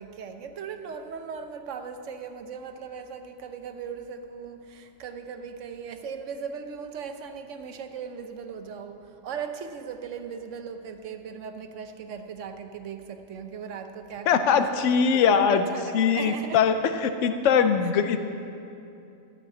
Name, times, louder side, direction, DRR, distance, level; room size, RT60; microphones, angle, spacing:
voice 1, 0.0-16.6, right 6 dB, 80° right, 7 dB, 1.1 m, -38 dB
voice 2, 14.3-15.7 15.9-18.2, left 6 dB, 80° left, 8 dB, 1.0 m, -21 dB
13.5 x 5.7 x 9.3 m, 2.7 s
omnidirectional pair, 1.2 m